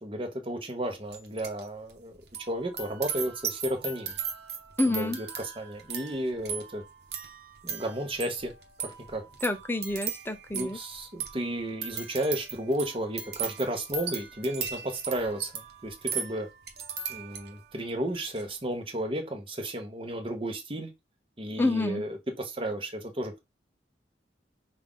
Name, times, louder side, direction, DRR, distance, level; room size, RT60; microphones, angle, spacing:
voice 1, 0.0-2.1 2.5-4.2 4.9-6.8 7.6-8.5 8.8-9.3 10.5-16.5 17.1-20.9 21.4-23.4, right 1 dB, 30° right, 1.0 m, -33 dB
sound 1, 1.1-1.6 1.9-17.7 18.1-18.4, right 7 dB, 60° right, 1.1 m, -38 dB
voice 2, 4.8-5.2 9.4-10.8 21.6-22.0, left 2 dB, 10° left, 0.5 m, -28 dB
5.5 x 2.5 x 3.7 m
head